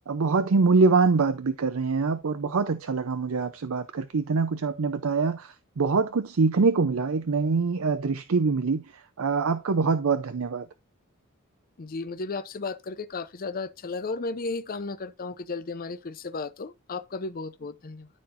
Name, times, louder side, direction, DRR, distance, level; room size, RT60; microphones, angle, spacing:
voice 1, 0.1-10.7, right 4 dB, 70° right, 0.6 m, -24 dB
voice 2, 11.8-18.1, left 3 dB, 45° left, 0.6 m, -34 dB
13.0 x 4.4 x 2.5 m
head